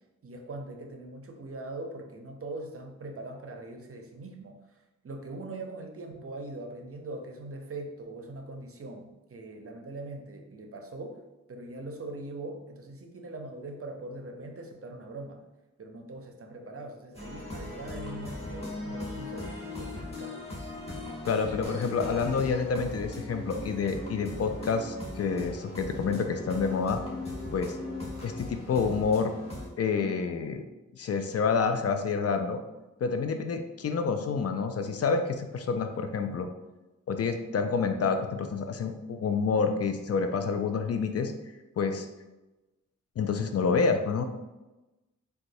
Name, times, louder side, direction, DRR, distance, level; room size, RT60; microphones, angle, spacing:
voice 1, 0.2-4.8 5.0-11.2 11.5-15.4 15.8-20.4, right 2 dB, 45° right, 3 dB, 0.6 m, -41 dB
sound 1, 17.1-29.7, left 2 dB, 20° left, 1.3 m, -38 dB
voice 2, 21.3-27.0 27.5-27.8 28.2-29.3 29.8-30.6 31.0-32.6 33.0-36.5 37.1-41.3 41.8-42.1 43.2-44.2, left 5 dB, 50° left, 7 dB, 0.4 m, -28 dB
3.9 x 2.3 x 2.7 m, 1.0 s
cardioid pair, 40°, 31 cm